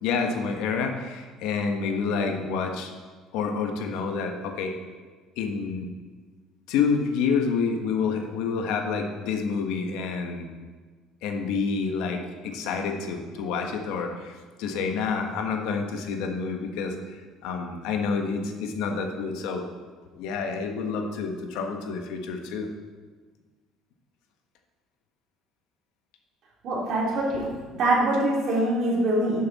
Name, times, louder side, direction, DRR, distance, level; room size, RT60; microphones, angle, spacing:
voice 1, 0.0-2.9 3.3-4.7 5.4-5.9 6.7-10.5 11.2-19.7 20.1-22.7, left 5 dB, 80° left, 4 dB, 1.3 m, -28 dB
voice 2, 26.6-27.5 27.8-29.4, right 1 dB, 50° right, -4 dB, 2.9 m, -24 dB
10.5 x 7.4 x 4.2 m, 1.4 s
cardioid pair, 155°, 0 cm